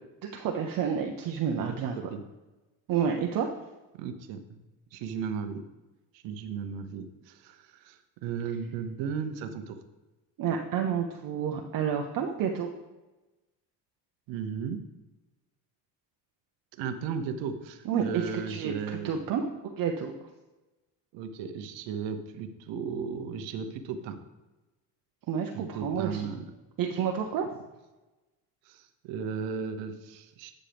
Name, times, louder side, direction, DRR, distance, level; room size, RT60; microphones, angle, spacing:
voice 1, 0.2-1.9 2.9-3.5 10.4-12.7 17.9-20.1 25.3-26.3 26.8-27.5, right 7 dB, 50° right, 2 dB, 0.7 m, -30 dB
voice 2, 1.7-2.2 3.9-4.6 4.9-5.6 6.1-9.8 14.3-14.8 16.7-19.1 21.1-24.2 25.5-26.5 28.6-30.5, right 6 dB, 80° right, 8 dB, 1.0 m, -35 dB
10.0 x 6.5 x 3.4 m, 1.1 s
cardioid pair, 125°, 43 cm